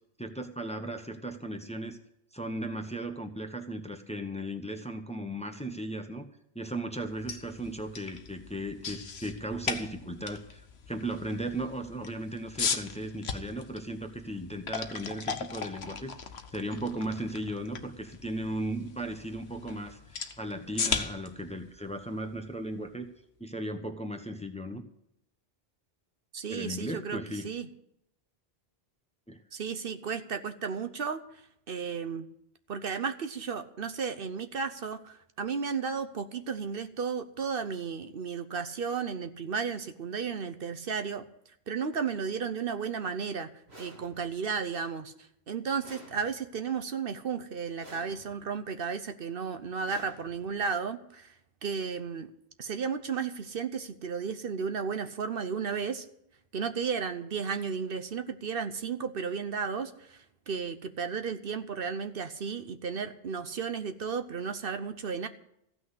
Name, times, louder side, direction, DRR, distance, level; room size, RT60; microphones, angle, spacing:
voice 1, 0.2-2.0 2.3-6.3 6.5-10.6 10.9-16.1 16.5-23.1 23.4-24.8 26.5-27.5 29.3-29.4, right 1 dB, 5° left, 7 dB, 1.0 m, -36 dB
sound 1, 7.1-23.0, left 6 dB, 85° left, 1.2 m, -38 dB
voice 2, 26.3-27.7 29.5-31.4 31.7-32.3 32.7-41.3 41.7-43.5 43.8-45.1 45.5-51.3 51.6-52.3 52.6-56.1 56.5-60.2 60.5-65.3, right 6 dB, 65° right, 9 dB, 1.0 m, -34 dB
sound 2, 43.7-44.5 45.8-46.7 47.8-48.6 49.8-50.7, right 1 dB, 90° right, 3.3 m, -52 dB
15.0 x 6.3 x 9.7 m, 0.75 s
omnidirectional pair, 1.0 m